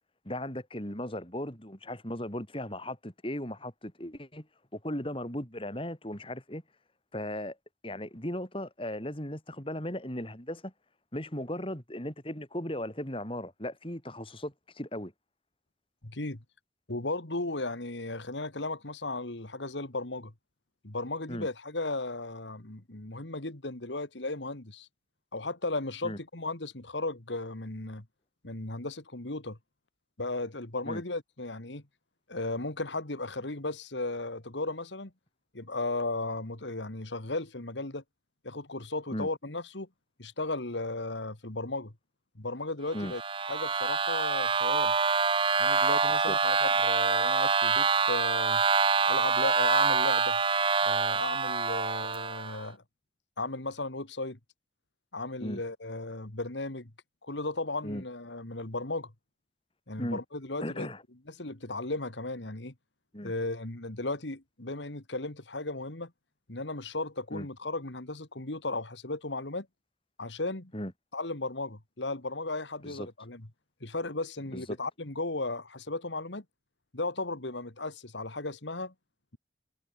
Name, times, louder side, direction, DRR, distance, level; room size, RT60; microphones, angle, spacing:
voice 1, 0.2-4.5 4.7-6.6 7.1-7.6 7.8-10.7 11.1-15.1 21.3-21.5 26.0-26.2 30.9-31.0 39.1-39.3 42.9-43.1 46.3-46.4 55.4-55.6 57.8-58.0 60.0-60.2 60.6-61.0 63.1-63.3 67.3-67.5 70.7-70.9 72.8-73.1 74.5-74.6, left 1 dB, 30° left, 6.1 m, -37 dB
voice 2, 16.0-16.4 16.9-20.3 20.8-24.9 25.3-28.1 28.4-29.6 30.2-31.8 32.3-35.1 35.5-38.0 38.4-39.9 40.2-41.9 42.4-44.9 45.6-48.6 49.0-50.4 50.8-52.8 53.4-54.4 55.1-56.9 57.2-59.1 59.9-60.9 61.3-62.7 63.2-66.1 66.5-69.7 70.2-70.7 71.1-73.5 73.8-76.4 76.9-78.9, left 2 dB, 85° left, 2.6 m, -35 dB
sound 1, 42.9-52.6, right 5 dB, 30° right, 0.7 m, -26 dB
head